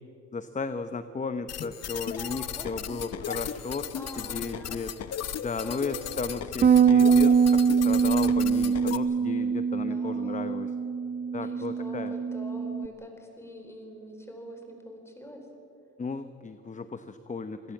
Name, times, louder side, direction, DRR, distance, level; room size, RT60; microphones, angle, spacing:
voice 1, 0.3-3.9 4.2-4.9 5.4-10.7 11.3-12.2 16.0-17.7, left 4 dB, 25° left, 10 dB, 0.9 m, -35 dB
sound 1, 1.5-9.0, left 9 dB, 55° left, 1.0 m, -36 dB
voice 2, 2.2-3.4 3.9-4.8 5.6-6.3 9.9-10.7 11.4-15.5, equal, 10° left, 3 dB, 5.0 m, -44 dB
Bass guitar, 6.6-12.9, right 6 dB, 30° right, 0.4 m, -23 dB
26.5 x 17.5 x 7.4 m, 2.9 s
cardioid pair, 90°, 30 cm